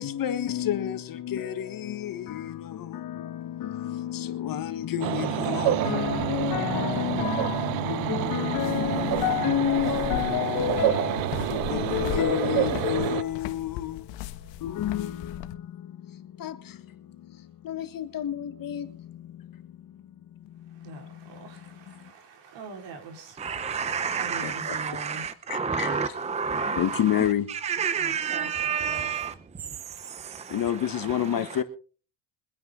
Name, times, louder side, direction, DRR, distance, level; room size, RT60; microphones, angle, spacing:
voice 1, 0.0-21.6 21.9-22.1 24.4-24.8 25.5-26.2 26.8-27.5 30.5-31.6, left 11 dB, 45° left, 1.6 m, -30 dB
sound 1, 5.0-13.2, right 15 dB, 85° right, 0.8 m, -28 dB
sound 2, 6.0-15.5, left 12 dB, 70° left, 1.5 m, -39 dB
voice 2, 20.7-25.4 26.4-26.9 27.9-29.3 30.8-31.2, right 4 dB, 65° right, 4.8 m, -44 dB
voice 3, 23.4-29.3 29.9-30.7 31.1-31.2, right 6 dB, 15° right, 0.7 m, -30 dB
23.5 x 9.6 x 3.9 m
cardioid pair, 115°, 46 cm